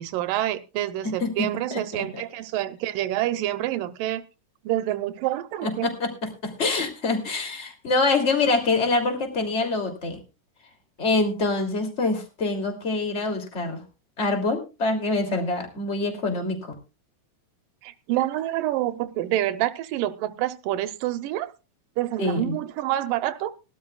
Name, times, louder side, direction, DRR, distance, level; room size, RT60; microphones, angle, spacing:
voice 1, 0.0-4.2 4.6-5.9 17.8-21.5 22.0-23.5, right 14 dB, 90° right, 2.5 m, -27 dB
voice 2, 1.0-2.0 5.6-10.2 11.0-13.8 14.2-16.6 22.2-22.6, left 3 dB, 20° left, 2.8 m, -25 dB
20.5 x 12.5 x 2.3 m
omnidirectional pair, 3.8 m